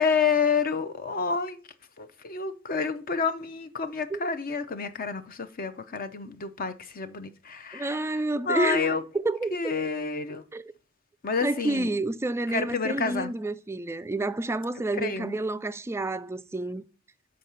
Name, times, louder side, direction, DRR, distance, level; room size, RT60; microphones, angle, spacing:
voice 1, 0.0-1.6 2.0-9.0 9.5-10.4 11.2-12.0 12.5-13.3 15.0-15.4, left 5 dB, 45° left, 0.6 m, -29 dB
voice 2, 7.7-8.9 9.2-9.7 10.5-10.7 11.4-16.8, right 2 dB, 15° right, 0.3 m, -29 dB
6.5 x 4.6 x 5.5 m
head